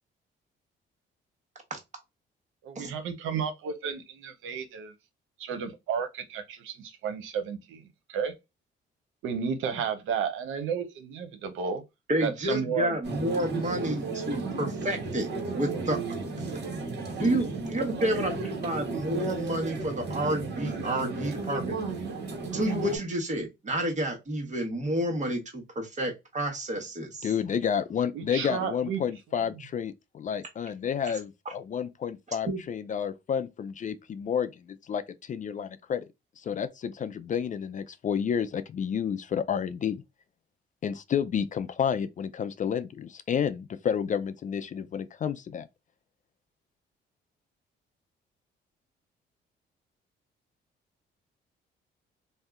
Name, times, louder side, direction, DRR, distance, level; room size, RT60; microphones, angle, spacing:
voice 1, 2.6-4.9 5.4-7.8 8.1-8.3 9.2-11.8 12.2-13.0 28.1-29.0, right 6 dB, 90° right, 0.8 m, -32 dB
voice 2, 12.1-15.3 15.5-16.1 17.2-21.8 22.5-27.3 32.5-32.6, right 1 dB, 35° right, 1.2 m, -30 dB
sound 1, 13.0-23.0, right 3 dB, 60° right, 1.4 m, -34 dB
voice 3, 27.2-36.1 36.4-40.0 40.8-45.7, left 8 dB, 40° left, 0.4 m, -30 dB
2.7 x 2.1 x 3.6 m
cardioid pair, 90°, 20 cm